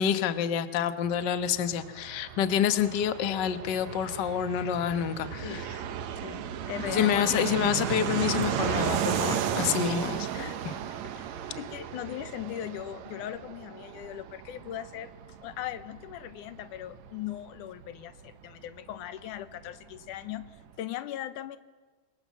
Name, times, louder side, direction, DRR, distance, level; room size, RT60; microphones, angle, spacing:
voice 1, 0.0-5.6 6.9-10.3 10.6-10.7, left 9 dB, 50° left, 10 dB, 1.3 m, -28 dB
Fixed-wing aircraft airplane, 1.0-19.4 19.7-19.8 20.0-20.7, right 9 dB, 70° right, 2.3 m, -34 dB
voice 2, 6.2-7.5 10.3-10.6 11.2-11.3 11.5-15.1 15.4-21.6, left 12 dB, 85° left, 13 dB, 2.5 m, -39 dB
28.0 x 23.5 x 7.6 m, 1.4 s
omnidirectional pair, 3.5 m